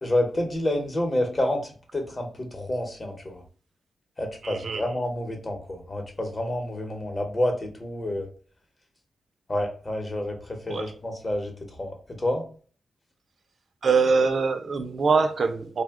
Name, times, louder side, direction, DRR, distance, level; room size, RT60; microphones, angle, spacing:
voice 1, 0.0-3.4 4.2-8.3 9.5-12.4, left 1 dB, 30° left, 0.8 m, -29 dB
voice 2, 4.4-4.8 10.7-10.9 13.8-15.8, right 4 dB, 60° right, 0.4 m, -23 dB
2.7 x 2.1 x 3.4 m
wide cardioid pair, 110°, 0 cm